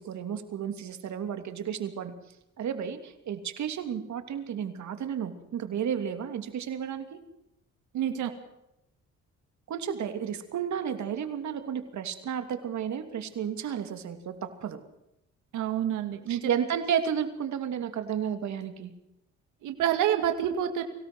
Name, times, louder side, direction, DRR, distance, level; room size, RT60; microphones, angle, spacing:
voice 1, 0.0-2.1 2.6-7.2 9.7-14.3 14.6-14.8 16.3-18.9, right 8 dB, 65° right, 7 dB, 3.0 m, -32 dB
voice 2, 7.9-8.3 15.5-16.5 19.6-20.8, right 10 dB, 90° right, 6 dB, 2.2 m, -28 dB
24.5 x 17.0 x 6.3 m, 0.84 s
cardioid pair, 90°, 30 cm